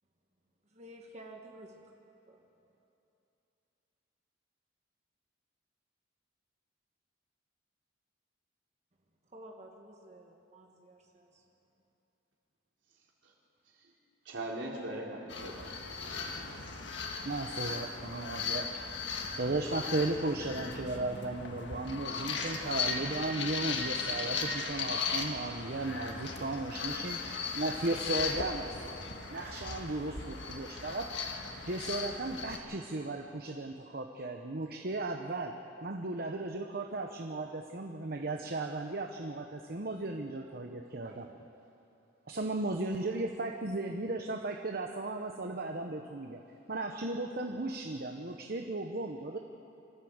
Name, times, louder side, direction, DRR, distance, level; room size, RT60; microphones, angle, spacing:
voice 1, 0.7-1.9 2.3-2.4 9.3-11.4, right 1 dB, 35° right, 0 dB, 1.6 m, -52 dB
voice 2, 14.2-16.3, right 1 dB, 80° right, -2 dB, 3.9 m, -41 dB
sound 1, 15.3-32.6, left 5 dB, 65° left, 1.9 m, -37 dB
voice 3, 17.2-19.0 19.4-31.3 31.6-41.5 42.3-46.4 46.7-49.4, right 2 dB, 55° right, 4 dB, 1.0 m, -36 dB
25.5 x 14.0 x 8.0 m, 2.9 s
head